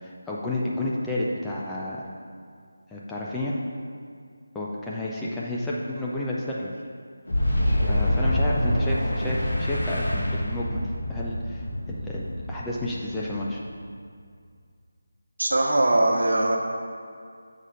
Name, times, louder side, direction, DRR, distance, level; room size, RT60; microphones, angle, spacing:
voice 1, 0.0-2.1 2.9-3.5 4.5-6.7 7.9-10.8 11.1-13.6, left 1 dB, 5° left, -5 dB, 0.4 m, -31 dB
Boom, 7.3-13.8, left 1 dB, 70° left, 1.7 m, -26 dB
voice 2, 15.4-16.6, right 1 dB, 75° right, 0 dB, 1.0 m, -21 dB
6.5 x 4.2 x 5.0 m, 2.2 s
figure-of-eight pair, 170°, 0 cm